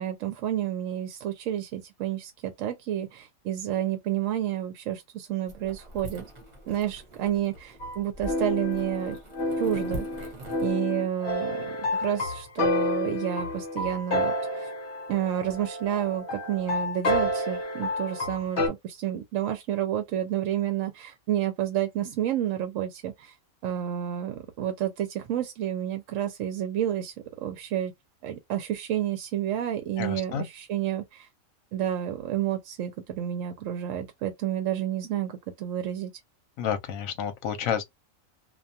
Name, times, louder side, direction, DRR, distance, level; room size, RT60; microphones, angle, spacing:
voice 1, 0.0-6.2 6.7-9.2 9.6-10.3 10.6-14.7 15.1-23.3 23.6-27.9 28.2-31.3 31.7-36.1, right 11 dB, 70° right, 0.9 m, -30 dB
sound 1, 5.5-10.7, equal, 35° right, 1.0 m, -43 dB
sound 2, 7.8-18.7, left 1 dB, 60° left, 0.9 m, -29 dB
voice 2, 30.0-30.5 36.6-37.8, left 8 dB, 80° left, 1.0 m, -30 dB
2.4 x 2.2 x 2.6 m
omnidirectional pair, 1.4 m